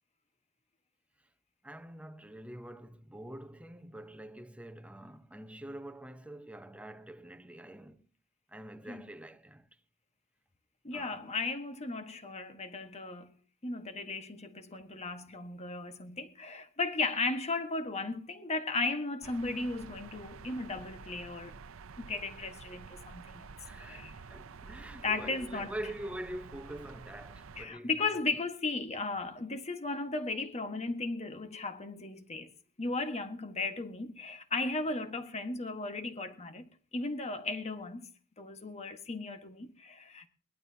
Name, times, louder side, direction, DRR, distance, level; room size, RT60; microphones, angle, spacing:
voice 1, 1.6-8.1 8.5-9.8 10.9-11.3 23.6-28.2, right 1 dB, 5° right, 1.0 m, -45 dB
voice 2, 10.8-13.3 13.6-21.5 22.0-23.5 23.8-24.1 25.0-25.7 27.6-32.5 32.8-38.1 38.4-40.3, left 3 dB, 35° left, 1.6 m, -36 dB
sound 1, 19.2-27.7, right 5 dB, 80° right, 0.6 m, -49 dB
22.0 x 19.0 x 2.9 m
head